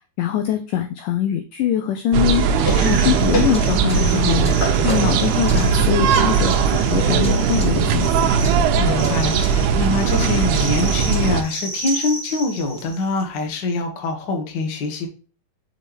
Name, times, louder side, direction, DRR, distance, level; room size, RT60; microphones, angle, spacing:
voice 1, 0.2-8.3, left 10 dB, 85° left, 7 dB, 1.9 m, -23 dB
sound 1, 2.1-11.4, right 6 dB, 90° right, 2.7 m, -19 dB
sound 2, 2.3-13.2, right 1 dB, 5° left, 1.2 m, -33 dB
sound 3, 2.4-9.2, equal, 50° left, 1.3 m, -30 dB
voice 2, 8.8-15.1, left 3 dB, 70° left, 3 dB, 1.0 m, -24 dB
6.2 x 5.3 x 3.1 m, 0.37 s
omnidirectional pair, 4.5 m